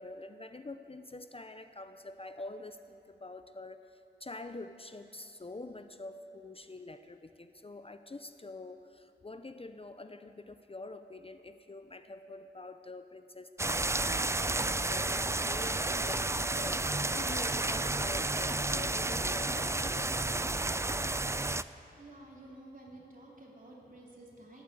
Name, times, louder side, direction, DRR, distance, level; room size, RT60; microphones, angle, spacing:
voice 1, 0.0-21.1, left 2 dB, 35° left, 9 dB, 0.5 m, -46 dB
sound 1, 13.6-21.6, right 2 dB, 15° right, 0.3 m, -31 dB
voice 2, 22.0-24.6, right 1 dB, 50° right, -3 dB, 3.3 m, -51 dB
18.5 x 8.9 x 8.2 m, 2.8 s
wide cardioid pair, 75°, 18 cm